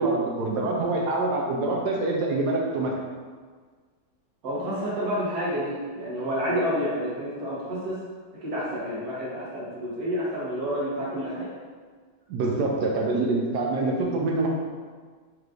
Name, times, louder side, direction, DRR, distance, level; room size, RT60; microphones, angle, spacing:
voice 1, 0.0-3.0 12.3-14.5, right 2 dB, 75° right, -1 dB, 0.9 m, -25 dB
voice 2, 4.4-8.0 8.4-11.5, equal, 55° right, -8 dB, 1.6 m, -29 dB
4.6 x 3.2 x 2.5 m, 1.5 s
omnidirectional pair, 2.2 m